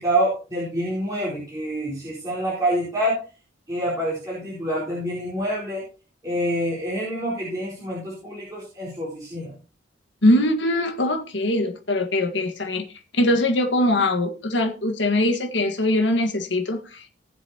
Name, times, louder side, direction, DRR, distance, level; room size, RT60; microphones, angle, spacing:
voice 1, 0.0-3.2 3.7-5.8 6.2-9.5, right 1 dB, 20° right, -8 dB, 4.6 m, -26 dB
voice 2, 10.2-12.9 13.1-17.1, left 1 dB, 65° left, 4 dB, 1.7 m, -22 dB
19.0 x 7.3 x 3.0 m, 0.34 s
head